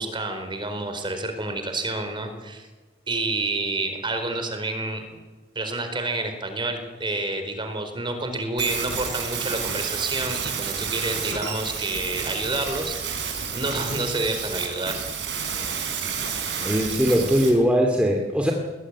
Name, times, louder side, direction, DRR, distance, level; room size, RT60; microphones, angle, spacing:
voice 1, 0.0-2.7 3.1-5.1 5.5-15.0, right 2 dB, 25° right, 6 dB, 4.5 m, -29 dB
sound 1, 8.6-17.5, right 6 dB, 70° right, 6.1 m, -30 dB
voice 2, 16.6-18.5, equal, 5° right, 1 dB, 2.6 m, -20 dB
21.5 x 20.5 x 9.9 m, 1.2 s
head